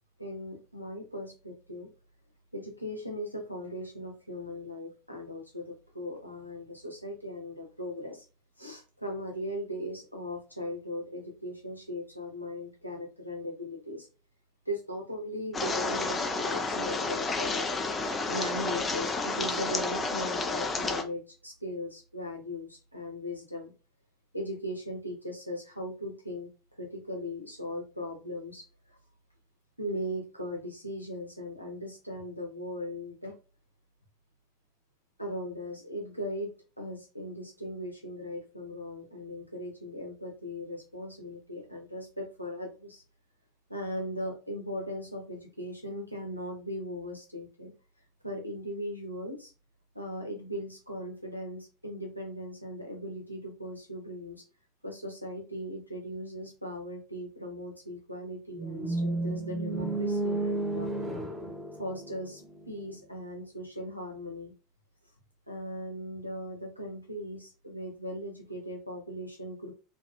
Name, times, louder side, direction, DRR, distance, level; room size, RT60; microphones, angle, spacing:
voice 1, 0.2-1.9 2.5-8.3 8.6-14.1 14.7-23.7 24.3-26.5 26.8-28.7 29.8-33.3 35.2-43.0 43.7-47.7 48.2-49.5 49.9-54.4 54.8-61.1 61.7-64.5 65.5-69.7, equal, 90° left, 0 dB, 0.6 m, -38 dB
sound 1, 15.5-21.0, left 3 dB, 20° left, 0.4 m, -31 dB
sound 2, 58.5-62.7, right 2 dB, 25° right, 1.0 m, -32 dB
2.6 x 2.3 x 2.3 m, 0.33 s
figure-of-eight pair, 75°, 0 cm